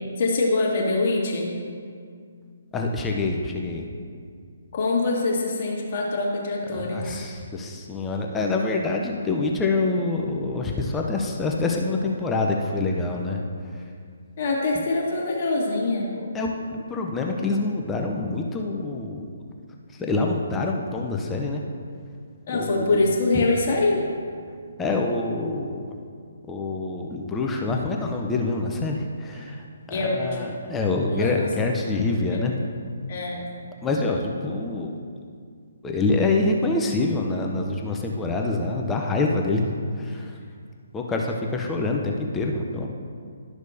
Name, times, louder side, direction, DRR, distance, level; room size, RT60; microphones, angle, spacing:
voice 1, 0.2-1.5 4.7-7.2 14.4-16.3 22.5-24.1 29.9-30.4 31.1-31.5 32.3-32.4 33.1-33.5, left 2 dB, 45° left, -3 dB, 1.8 m, -24 dB
voice 2, 2.7-3.8 6.7-13.8 16.3-19.3 19.9-21.6 22.5-23.0 24.8-26.0 26.5-32.6 33.8-35.0 35.8-40.4 40.9-42.9, left 3 dB, 10° left, 0 dB, 0.6 m, -26 dB
12.0 x 6.2 x 2.7 m, 2.2 s
figure-of-eight pair, 135°, 0 cm